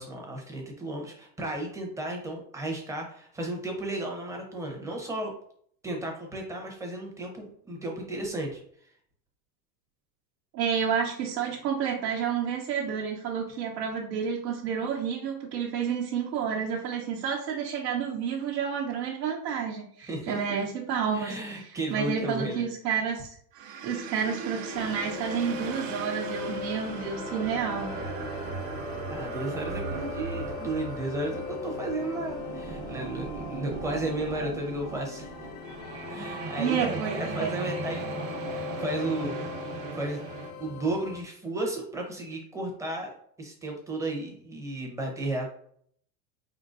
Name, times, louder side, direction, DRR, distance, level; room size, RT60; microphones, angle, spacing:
voice 1, 0.0-5.3 5.8-8.9 20.0-20.4 21.1-22.7 29.1-35.5 36.1-38.2 38.5-40.2 40.6-43.1 43.4-45.5, right 1 dB, 5° right, 0 dB, 0.5 m, -34 dB
voice 2, 10.5-21.4 21.6-23.3 23.8-27.9 36.6-37.5, right 7 dB, 90° right, -2 dB, 0.9 m, -30 dB
sound 1, 23.5-40.5, right 5 dB, 55° right, 0.8 m, -38 dB
sound 2, 24.7-41.2, left 6 dB, 85° left, 0.8 m, -39 dB
4.6 x 3.8 x 2.4 m, 0.62 s
supercardioid pair, 150°, 49 cm